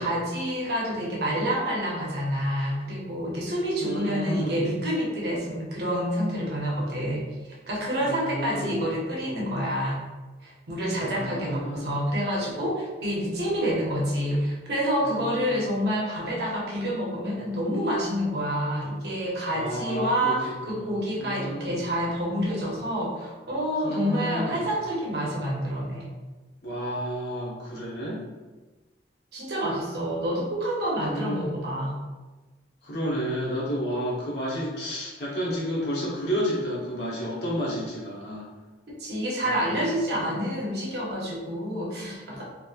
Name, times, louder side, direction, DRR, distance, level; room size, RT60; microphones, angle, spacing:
voice 1, 0.0-7.2 7.7-10.0 10.4-26.1 29.3-31.9 39.0-42.4, equal, 60° right, -4 dB, 0.6 m, -28 dB
voice 2, 3.8-4.6 8.0-8.7 10.9-11.9 15.0-15.6 19.5-21.8 23.8-24.6 26.6-28.2 31.0-31.5 32.8-38.5 39.4-39.7 40.1-40.3, equal, 60° left, -6 dB, 0.8 m, -31 dB
2.9 x 2.0 x 2.3 m, 1.2 s
head